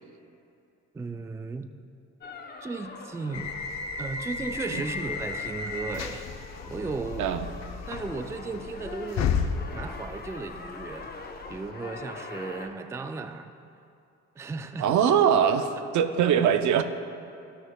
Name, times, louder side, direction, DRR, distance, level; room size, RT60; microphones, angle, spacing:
voice 1, 0.9-1.7 2.6-3.5 4.0-6.3 6.7-7.3 7.9-11.1 11.5-13.5 14.4-15.0 15.7-16.0 16.8-16.9, right 3 dB, 10° right, 9 dB, 0.3 m, -35 dB
sound 1, 2.2-12.7, left 4 dB, 30° left, 0.8 m, -44 dB
sound 2, 3.3-11.7, left 6 dB, 65° left, 0.6 m, -34 dB
voice 2, 14.8-16.8, right 8 dB, 75° right, 9 dB, 0.6 m, -22 dB
14.5 x 6.3 x 2.3 m, 2.6 s
cardioid pair, 90°, 30 cm